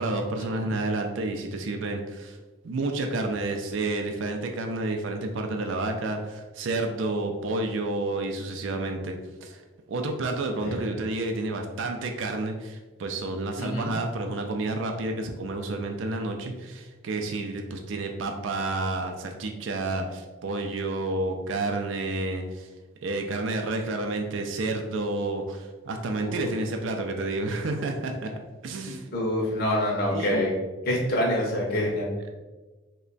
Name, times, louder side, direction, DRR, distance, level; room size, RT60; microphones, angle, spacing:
voice 1, 0.0-2.4 2.6-9.1 9.4-9.6 9.9-22.7 23.0-28.3 28.6-29.1 30.1-30.4, right 2 dB, 75° right, 4 dB, 0.4 m, -30 dB
voice 2, 10.6-10.9 13.6-13.9 26.2-26.4 29.1-30.5 30.9-32.3, left 1 dB, 50° left, -3 dB, 0.6 m, -26 dB
3.2 x 2.2 x 3.8 m, 1.2 s
head